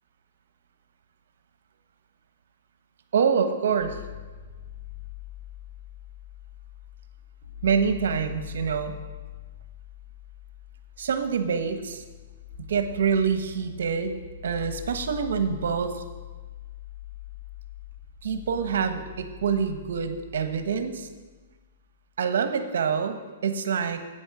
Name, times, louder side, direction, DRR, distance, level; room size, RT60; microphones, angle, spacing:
voice 1, 3.1-4.0 7.6-8.9 11.0-12.0 12.7-14.1 14.4-16.0 18.2-21.1 22.2-24.0, right 6 dB, 75° right, 8 dB, 1.2 m, -26 dB
sound 1, 3.8-21.7, left 11 dB, 80° left, 2.6 m, -43 dB
12.5 x 8.9 x 4.9 m, 1.3 s
hypercardioid pair, 155°, 0 cm